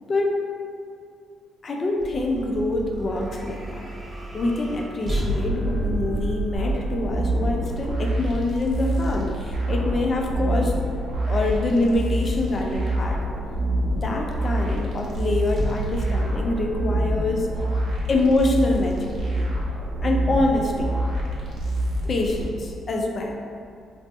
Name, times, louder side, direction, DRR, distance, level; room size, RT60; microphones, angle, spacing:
voice 1, 0.1-0.4 1.6-3.9 4.3-10.8 11.3-13.2 13.9-17.5 18.1-19.5 20.0-20.9 22.0-23.4, left 2 dB, 40° left, 1 dB, 0.4 m, -25 dB
sound 1, 2.0-9.3 15.5-19.6, right 1 dB, 25° right, 0.4 m, -32 dB
sound 2, 6.5-22.4, right 1 dB, 65° right, 0.7 m, -26 dB
2.8 x 2.0 x 3.5 m, 2.4 s
cardioid pair, 90°, 0 cm